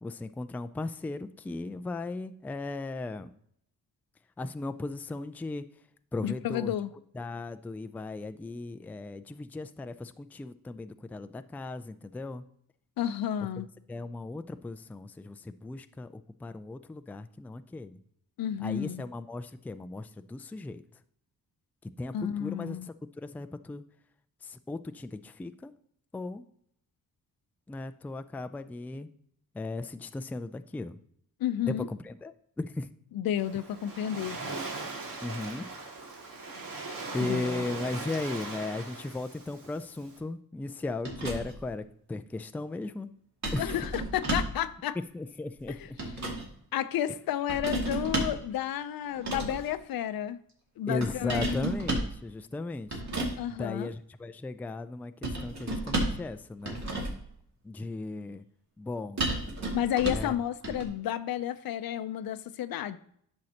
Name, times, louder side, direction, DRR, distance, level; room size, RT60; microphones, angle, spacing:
voice 1, 0.0-3.3 4.4-5.7 6.1-6.7 7.1-12.4 13.6-18.0 18.6-20.8 21.8-23.8 24.4-25.7 26.1-26.4 27.7-29.1 29.5-31.0 31.6-32.9 35.2-35.7 37.1-43.1 43.5-43.8 45.1-46.0 50.9-53.0 53.5-56.8 57.6-58.4 58.8-59.2 60.1-60.3 60.7-60.8, left 2 dB, 5° left, 0.3 m, -37 dB
voice 2, 6.2-6.9 13.0-13.7 18.4-19.0 22.1-22.9 31.4-31.9 33.1-34.4 37.2-37.6 43.6-45.0 45.8-45.9 46.7-50.4 50.8-51.6 53.4-53.9 59.7-63.0, left 11 dB, 80° left, 0.6 m, -31 dB
Waves surf, 33.4-40.2, right 3 dB, 70° right, 2.2 m, -40 dB
sound 1, 41.0-41.7 43.4-44.6 45.6-46.5 47.5-48.4 49.1-49.7 51.0-52.2 52.9-53.4 55.2-56.3 56.6-57.3 59.2-60.3 60.6-60.8, right 2 dB, 50° right, 2.3 m, -32 dB
10.5 x 6.5 x 2.8 m
cardioid pair, 105°, 35 cm